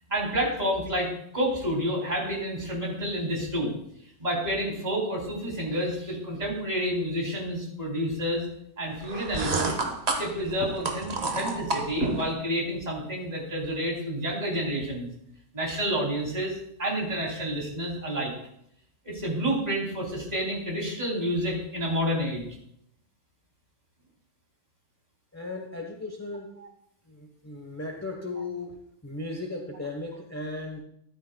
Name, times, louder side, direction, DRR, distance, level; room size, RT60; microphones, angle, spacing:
voice 1, 0.1-3.7 4.2-8.4 8.8-9.8 10.2-15.1 15.5-18.3 19.0-22.5, equal, 35° right, -2 dB, 3.2 m, -29 dB
sound 1, 9.0-12.3, right 3 dB, 55° right, 1.5 m, -30 dB
voice 2, 25.3-26.6 27.1-30.8, left 2 dB, 15° left, 2 dB, 1.0 m, -36 dB
13.5 x 12.5 x 2.2 m, 0.73 s
omnidirectional pair, 1.3 m